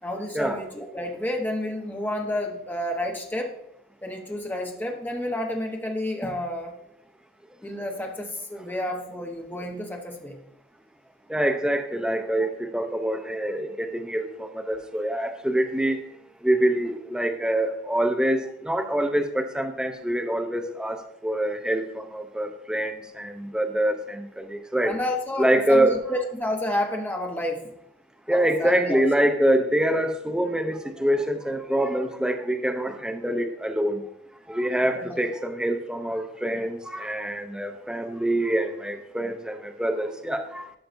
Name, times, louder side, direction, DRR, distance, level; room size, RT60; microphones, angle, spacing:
voice 1, 0.0-3.5 4.0-6.7 7.6-10.4 24.9-27.6 28.3-29.3 34.9-35.2, left 1 dB, 10° left, 1 dB, 1.1 m, -30 dB
voice 2, 11.3-16.0 16.4-25.0 25.4-26.0 28.3-34.0 34.5-40.6, right 1 dB, 5° right, 5 dB, 0.5 m, -25 dB
12.5 x 5.7 x 2.6 m, 0.78 s
head